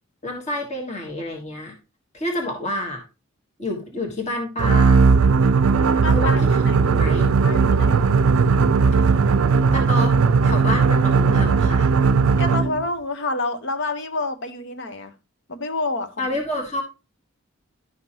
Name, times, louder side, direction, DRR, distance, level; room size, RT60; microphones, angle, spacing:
voice 1, 0.2-1.7 2.1-3.0 3.6-5.0 6.1-7.3 8.9-9.0 9.7-10.1 10.4-11.9 16.2-16.8, left 1 dB, 30° left, 1 dB, 1.5 m, -28 dB
sound 1, 4.6-12.8, right 5 dB, 75° right, 0.5 m, -17 dB
voice 2, 6.0-6.8 7.4-8.1 12.4-15.1 15.5-16.3, left 3 dB, 55° left, 8 dB, 1.0 m, -28 dB
11.0 x 5.9 x 2.8 m, 0.29 s
head